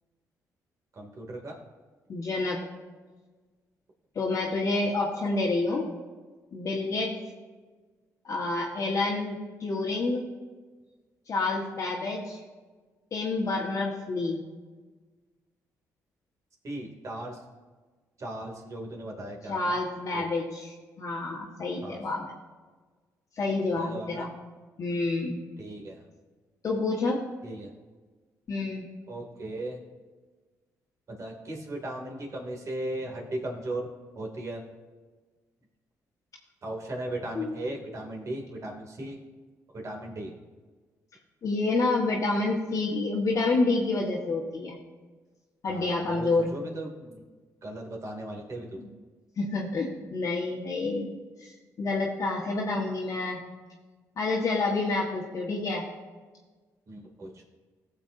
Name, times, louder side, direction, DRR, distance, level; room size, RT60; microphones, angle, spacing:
voice 1, 0.9-1.6 16.6-17.4 18.2-19.8 20.1-20.3 21.8-22.0 23.8-24.3 25.6-26.0 27.4-27.7 29.1-29.8 31.1-34.6 36.6-39.2 39.7-40.3 45.7-47.2 47.6-48.8 56.9-57.3, right 1 dB, 50° right, 1 dB, 2.7 m, -37 dB
voice 2, 2.1-2.6 4.1-5.8 6.5-7.1 8.2-10.2 11.3-12.4 13.1-14.4 19.5-22.3 23.4-24.3 24.8-25.4 26.6-27.2 28.5-28.9 37.3-37.5 41.4-44.8 45.6-46.5 49.4-51.1 51.4-53.4 54.2-55.8, left 3 dB, 55° left, -4 dB, 1.5 m, -28 dB
16.0 x 7.1 x 2.7 m, 1.4 s
supercardioid pair, 70°, 7 cm